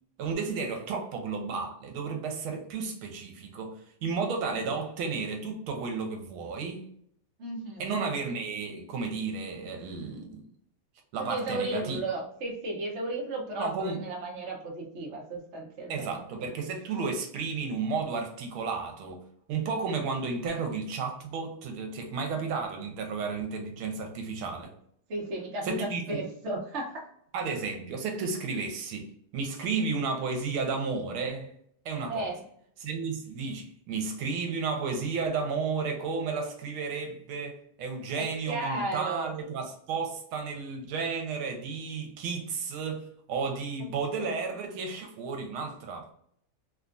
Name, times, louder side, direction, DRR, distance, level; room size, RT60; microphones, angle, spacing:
voice 1, 0.2-6.8 7.8-10.4 11.1-12.0 13.6-14.0 15.9-19.2 19.5-24.7 25.6-26.2 27.3-29.1 29.3-31.5 31.8-32.3 32.8-46.1, right 4 dB, 80° right, 1.5 m, -33 dB
voice 2, 7.4-8.0 11.2-16.5 25.1-27.1 32.1-32.4 38.2-39.3 43.8-44.3, right 2 dB, 50° right, 0.8 m, -35 dB
3.5 x 2.3 x 2.5 m
omnidirectional pair, 2.3 m